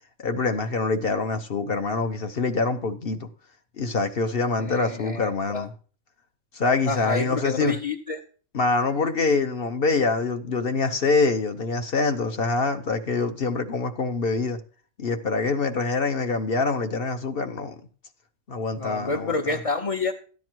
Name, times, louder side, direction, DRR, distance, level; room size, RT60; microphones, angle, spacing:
voice 1, 0.2-3.3 3.8-5.7 6.5-7.8 8.5-14.6 15.0-17.7 18.5-19.6, left 3 dB, 50° left, 1.0 m, -25 dB
voice 2, 4.6-5.7 6.9-8.2 18.8-20.1, left 3 dB, 35° left, 0.7 m, -28 dB
13.0 x 9.6 x 4.6 m
omnidirectional pair, 1.4 m